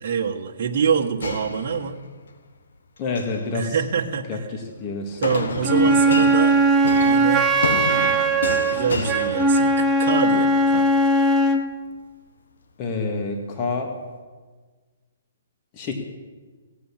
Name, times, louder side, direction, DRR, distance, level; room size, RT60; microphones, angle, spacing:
voice 1, 0.0-2.0 3.5-4.5 5.2-6.6 7.0-7.5 8.7-10.9, right 6 dB, 45° right, -2 dB, 1.4 m, -25 dB
sound 1, 1.2-2.3 3.0-3.5 5.2-10.1, left 4 dB, 75° left, 1.2 m, -30 dB
voice 2, 3.0-3.7 4.3-4.4 4.8-5.2 12.8-13.9 15.7-15.9, left 4 dB, 35° left, 3 dB, 2.0 m, -27 dB
Wind instrument woodwind instrument, 5.6-11.7, right 2 dB, 15° right, 1.1 m, -19 dB
17.0 x 8.5 x 7.4 m, 1.4 s
hypercardioid pair, 150°, 0 cm